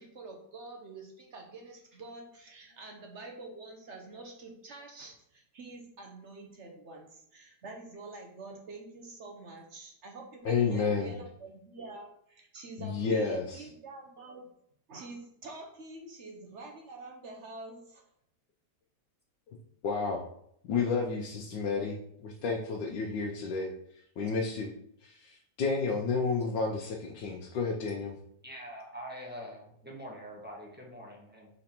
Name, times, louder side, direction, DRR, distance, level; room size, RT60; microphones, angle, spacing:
voice 1, 0.0-14.5 14.9-18.1, right 2 dB, 50° right, 2 dB, 0.9 m, -47 dB
voice 2, 10.4-11.1 12.8-13.6 19.5-19.6 19.8-20.2 20.6-23.7 24.2-24.7 25.0-28.1, left 4 dB, 80° left, -1 dB, 1.4 m, -31 dB
voice 3, 28.4-31.5, equal, 5° right, -3 dB, 1.0 m, -44 dB
5.2 x 4.2 x 4.4 m, 0.70 s
omnidirectional pair, 1.9 m